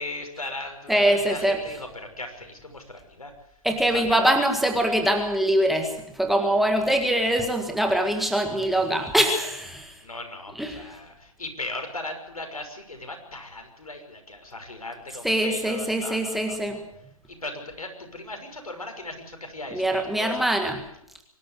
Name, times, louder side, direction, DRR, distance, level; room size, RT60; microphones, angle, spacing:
voice 1, 0.0-3.3 3.9-4.3 10.0-16.8 17.3-20.5, left 2 dB, 80° left, 5 dB, 6.1 m, -38 dB
voice 2, 0.9-1.6 3.6-10.0 10.6-10.9 15.2-16.8 19.7-20.8, right 1 dB, ahead, 4 dB, 1.8 m, -23 dB
24.5 x 12.5 x 9.7 m, 0.74 s
figure-of-eight pair, 135°, 18 cm